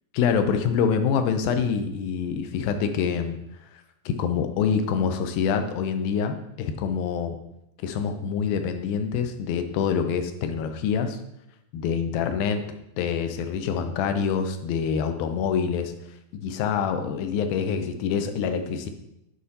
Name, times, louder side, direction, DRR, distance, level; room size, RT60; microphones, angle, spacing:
voice 1, 0.1-3.4 4.1-7.4 7.8-11.2 11.7-12.6 13.0-15.9 16.3-18.9, left 6 dB, 80° left, 7 dB, 2.3 m, -26 dB
7.9 x 4.9 x 4.1 m, 0.84 s
omnidirectional pair, 4.5 m